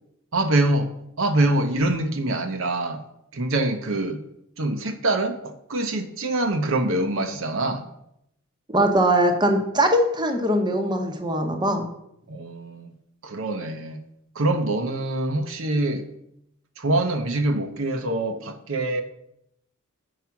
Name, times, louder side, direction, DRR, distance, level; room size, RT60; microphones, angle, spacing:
voice 1, 0.3-0.9 1.2-3.0 3.3-4.2 4.6-7.9 12.3-12.9 13.2-14.0 14.3-16.1 16.8-19.0, right 2 dB, 65° right, 5 dB, 0.8 m, -24 dB
voice 2, 8.7-11.9, right 1 dB, 20° right, 4 dB, 0.9 m, -21 dB
7.4 x 4.9 x 5.8 m, 0.78 s
head